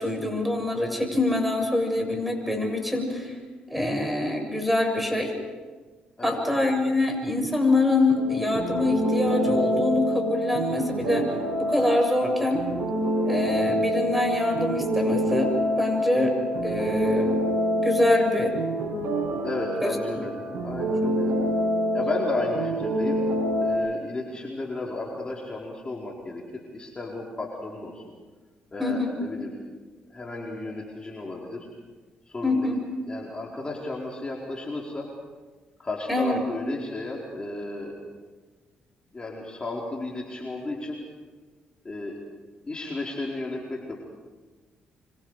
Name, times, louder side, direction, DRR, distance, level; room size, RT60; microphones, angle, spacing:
voice 1, 0.0-3.4 3.7-5.3 6.2-11.3 11.6-12.6 13.2-16.4 16.6-17.3 17.8-18.5 19.8-19.9 20.5-20.6 21.0-21.2 28.8-29.2 32.4-32.8 36.1-36.4, left 2 dB, ahead, 3 dB, 7.4 m, -25 dB
sound 1, 8.1-23.7, equal, 70° right, 6.4 m, -27 dB
voice 2, 19.4-20.3 20.6-21.5 21.9-23.2 23.6-28.0 28.7-29.5 30.1-31.7 32.3-32.8 33.1-35.1 35.8-37.9 39.1-41.0 41.8-42.2 42.6-44.0, left 2 dB, 30° left, -2 dB, 4.6 m, -33 dB
26.5 x 25.5 x 5.0 m, 1.4 s
supercardioid pair, 60°, 3 cm